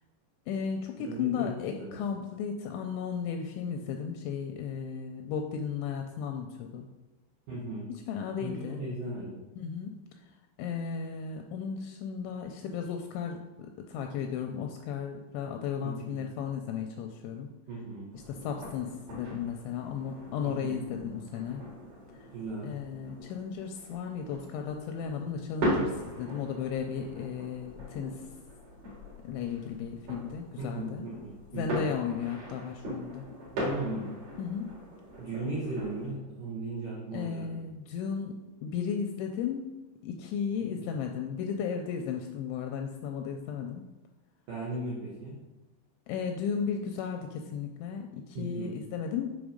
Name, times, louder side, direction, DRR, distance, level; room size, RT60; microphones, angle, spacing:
voice 1, 0.5-6.9 7.9-8.9 9.6-10.0 10.6-17.5 18.3-21.6 22.2-22.3 22.6-28.3 29.2-31.1 31.5-33.3 34.4-34.7 37.1-39.7 40.0-43.8 46.1-49.4, left 7 dB, 85° left, 4 dB, 2.7 m, -35 dB
voice 2, 1.0-1.9 7.5-7.9 8.4-9.4 15.8-16.2 17.7-18.1 20.4-20.8 22.3-22.7 30.6-31.8 33.5-34.1 35.2-37.6 40.8-40.9 44.5-45.4 48.4-48.8, right 2 dB, 85° right, -5 dB, 1.8 m, -37 dB
sound 1, 18.1-36.1, equal, 50° right, 3.0 m, -39 dB
7.1 x 5.4 x 5.1 m, 1.1 s
omnidirectional pair, 5.6 m